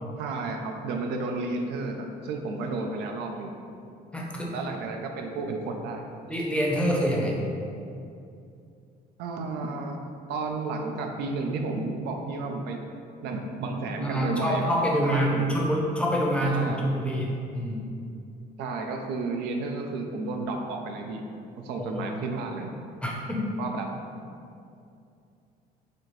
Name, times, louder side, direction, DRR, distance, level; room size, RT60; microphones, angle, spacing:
voice 1, 0.2-3.5 4.5-6.0 9.2-10.0 10.3-12.8 13.2-14.7 15.0-15.5 16.4-16.8 18.6-21.2 21.6-22.8 23.6-24.0, right 3 dB, 85° right, 3 dB, 0.4 m, -32 dB
voice 2, 4.1-4.5 6.3-7.4 14.0-17.8 21.8-22.0 23.0-23.5, equal, 5° left, -3 dB, 0.6 m, -26 dB
4.1 x 2.7 x 3.1 m, 2.5 s
cardioid pair, 110°, 17 cm